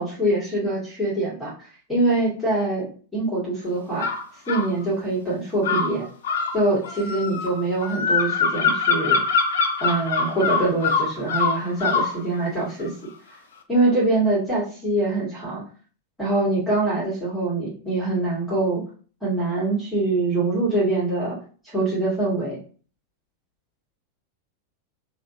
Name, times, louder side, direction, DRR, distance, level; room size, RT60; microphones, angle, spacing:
voice 1, 0.0-1.5 1.9-4.1 4.5-6.1 6.5-9.2 9.8-12.9 13.7-15.6 16.2-18.8 19.2-21.4 21.7-22.6, right 2 dB, 5° left, -8 dB, 1.7 m, -24 dB
sound 1, 4.0-4.7 5.6-12.2, left 5 dB, 60° left, 0.4 m, -23 dB
3.5 x 2.6 x 2.7 m, 0.41 s
figure-of-eight pair, 90°, 0 cm